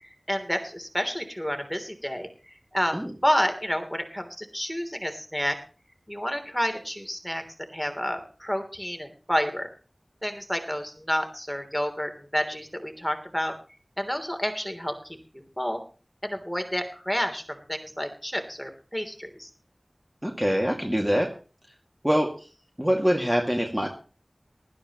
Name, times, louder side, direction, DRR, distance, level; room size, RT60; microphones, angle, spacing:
voice 1, 0.0-5.6 6.1-7.4 7.7-9.7 10.2-13.5 14.0-15.2 15.6-15.8 16.2-19.5, equal, 5° left, 6 dB, 3.2 m, -30 dB
voice 2, 20.2-21.3 22.0-22.5 22.8-23.9, equal, 10° right, 1 dB, 2.2 m, -24 dB
19.0 x 13.0 x 3.1 m, 0.37 s
wide cardioid pair, 50°, 0 cm